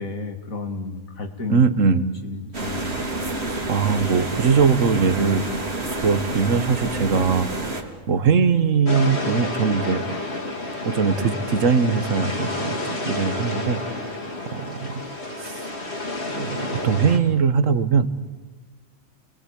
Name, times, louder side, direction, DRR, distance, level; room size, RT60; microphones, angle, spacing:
voice 1, 0.0-1.6 2.2-3.0, left 3 dB, 85° left, 4 dB, 2.8 m, -32 dB
voice 2, 1.5-2.0 3.5-5.4 5.9-7.5 7.7-10.0 10.8-13.8 14.5-15.7 16.3-18.2, right 5 dB, 70° right, 11 dB, 1.6 m, -21 dB
sound 1, 2.5-7.8, right 2 dB, 50° right, 3.0 m, -28 dB
sound 2, 8.8-17.2, left 2 dB, 50° left, 3.1 m, -30 dB
29.5 x 21.0 x 8.6 m, 1.2 s
omnidirectional pair, 1.4 m